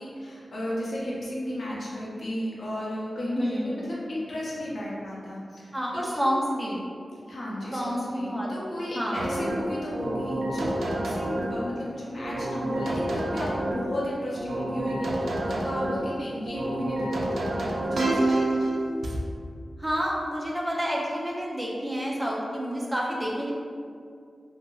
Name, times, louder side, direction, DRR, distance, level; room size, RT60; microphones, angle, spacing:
voice 1, 0.0-6.3 7.3-18.4, left 1 dB, 55° left, -6 dB, 0.7 m, -34 dB
voice 2, 3.4-3.9 5.7-6.9 7.7-8.5 8.9-9.3 19.8-23.5, equal, 10° right, -4 dB, 0.5 m, -29 dB
sound 1, 9.1-11.7 12.2-13.9 14.4-16.1 16.5-19.2, right 1 dB, 80° right, 0.3 m, -28 dB
2.7 x 2.7 x 2.3 m, 2.3 s
wide cardioid pair, 120°, 0 cm